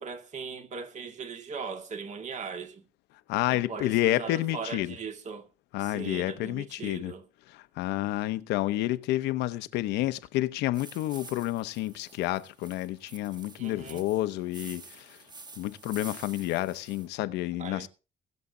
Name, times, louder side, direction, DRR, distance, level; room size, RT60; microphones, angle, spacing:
voice 1, 0.0-2.8 3.5-5.5 5.8-7.2 13.6-14.1 17.6-17.9, right 5 dB, 45° right, 2.2 m, -39 dB
voice 2, 3.3-4.9 5.7-7.1 7.5-15.2 15.6-17.9, left 16 dB, 90° left, 0.9 m, -30 dB
sound 1, 10.7-17.1, right 3 dB, 25° right, 2.0 m, -49 dB
21.5 x 7.3 x 3.9 m
cardioid pair, 110°, 17 cm